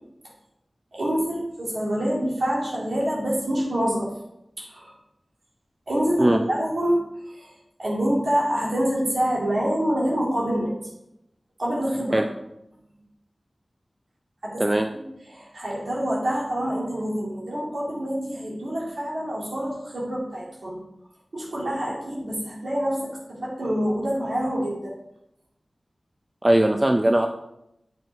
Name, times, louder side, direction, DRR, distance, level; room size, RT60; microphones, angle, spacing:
voice 1, 0.9-4.1 4.6-4.9 5.9-7.0 7.3-7.5 7.8-10.7 11.6-12.2 14.4-14.6 14.9-15.0 15.3-20.8 21.3-24.9, equal, 90° right, -5 dB, 2.4 m, -26 dB
voice 2, 14.6-14.9 26.4-27.3, right 1 dB, 25° right, 4 dB, 0.5 m, -19 dB
8.1 x 5.0 x 4.5 m, 0.83 s
wide cardioid pair, 70°, 0 cm